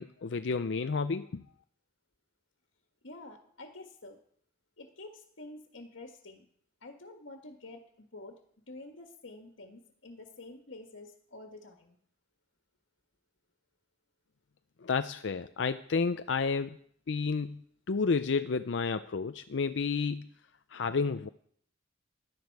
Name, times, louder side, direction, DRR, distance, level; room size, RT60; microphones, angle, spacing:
voice 1, 0.0-1.4 14.8-16.8 17.1-17.6 17.9-20.3 20.7-21.3, left 4 dB, 70° left, 11 dB, 0.5 m, -31 dB
voice 2, 3.0-4.2 4.8-6.4 6.8-7.8 8.1-8.3 8.7-12.0, left 2 dB, 85° left, 3 dB, 1.7 m, -48 dB
17.0 x 12.5 x 4.8 m, 0.63 s
head